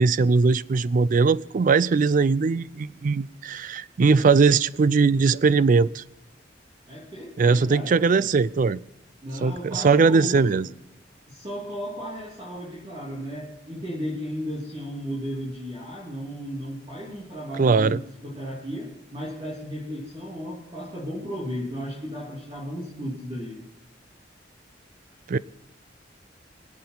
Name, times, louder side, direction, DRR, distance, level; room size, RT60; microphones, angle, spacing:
voice 1, 0.0-6.0 7.4-8.8 9.4-10.7 17.6-18.0 25.3-25.4, right 4 dB, 45° right, 0.4 m, -20 dB
voice 2, 6.9-8.0 9.2-10.6 11.3-23.6, equal, 30° right, 3.2 m, -34 dB
25.5 x 8.7 x 4.0 m
head